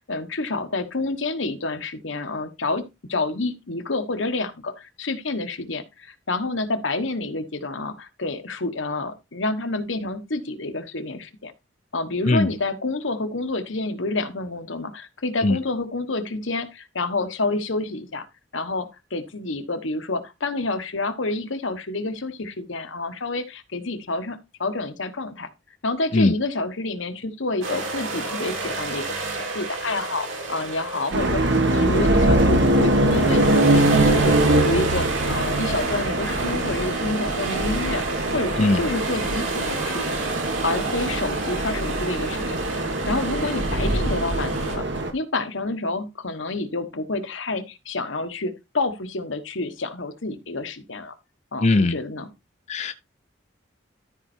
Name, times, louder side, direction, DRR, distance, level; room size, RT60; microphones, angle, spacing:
voice 1, 0.1-2.8 3.1-11.5 11.9-18.3 18.5-25.5 25.8-40.2 40.6-44.8 45.1-51.1 51.5-52.3, left 2 dB, 75° left, 1.3 m, -28 dB
sound 1, 27.6-44.8, right 3 dB, 90° right, 3.7 m, -31 dB
sound 2, 31.1-45.1, right 1 dB, 65° right, 1.8 m, -22 dB
voice 2, 51.6-51.9 52.7-52.9, left 2 dB, 35° left, 0.5 m, -19 dB
13.0 x 4.4 x 4.4 m
head